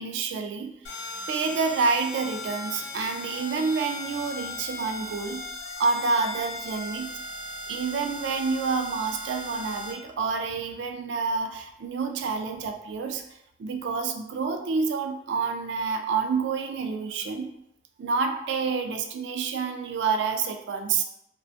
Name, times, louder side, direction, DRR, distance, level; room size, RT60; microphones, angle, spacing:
voice 1, 0.0-7.1 7.7-13.2 13.6-17.5 18.0-21.0, right 4 dB, 80° right, 5 dB, 0.3 m, -28 dB
sound 1, 0.8-9.9, left 1 dB, 65° left, 0.5 m, -37 dB
2.7 x 2.1 x 2.4 m, 0.77 s
head